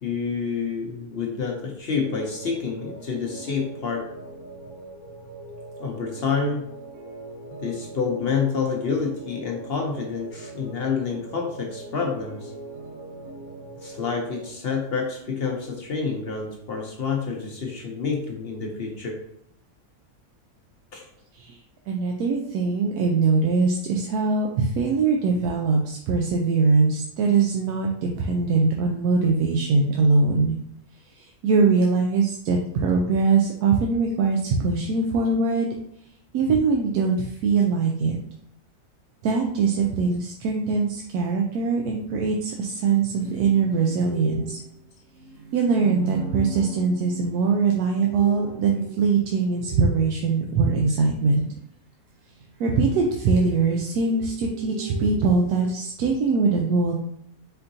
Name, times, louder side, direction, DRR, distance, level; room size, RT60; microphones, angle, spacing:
voice 1, 0.0-4.1 5.8-6.7 7.6-12.5 13.8-19.2 20.9-21.1, left 5 dB, 55° left, 0 dB, 0.7 m, -28 dB
sound 1, 2.0-14.5, right 2 dB, 40° right, 0.9 m, -41 dB
voice 2, 21.9-30.6 31.1-35.7 36.3-38.2 39.2-44.6 45.5-51.5 52.6-56.9, right 4 dB, 90° right, 1 dB, 1.1 m, -22 dB
sound 2, 43.2-50.4 52.4-55.7, right 4 dB, 60° right, 1.3 m, -39 dB
4.5 x 3.8 x 2.6 m, 0.72 s
omnidirectional pair, 1.6 m